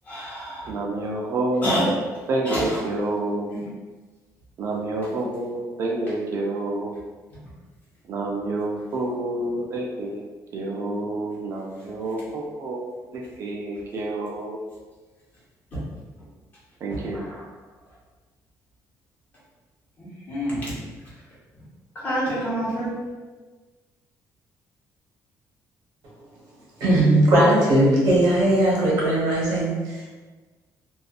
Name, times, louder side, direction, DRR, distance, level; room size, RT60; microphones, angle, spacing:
voice 1, 0.0-0.7 1.6-1.9 2.4-2.8 3.5-3.6 15.7-15.8 16.9-17.2 20.0-20.8 21.9-22.9, equal, 25° left, -8 dB, 0.9 m, -27 dB
voice 2, 0.7-1.8 2.3-3.5 4.6-6.9 8.0-14.6 16.8-17.2, right 2 dB, 45° right, -1 dB, 0.4 m, -28 dB
voice 3, 26.8-30.1, right 1 dB, 70° right, -5 dB, 0.9 m, -19 dB
2.6 x 2.3 x 2.3 m, 1.3 s
cardioid pair, 175°, 6 cm